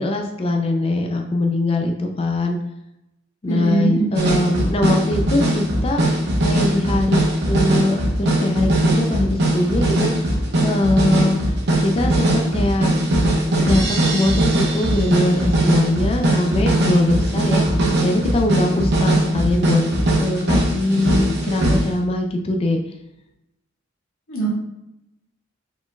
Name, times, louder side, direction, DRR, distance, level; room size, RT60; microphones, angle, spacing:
voice 1, 0.0-2.6 3.4-6.0 6.4-10.1 10.6-11.4 11.8-12.9 13.6-19.8 20.2-22.8, left 2 dB, 30° left, 2 dB, 0.4 m, -22 dB
voice 2, 3.5-4.1 24.3-24.5, right 3 dB, 85° left, -4 dB, 1.4 m, -20 dB
sound 1, 4.2-22.1, right 1 dB, 60° right, 0.9 m, -20 dB
4.7 x 3.8 x 2.2 m, 0.87 s
head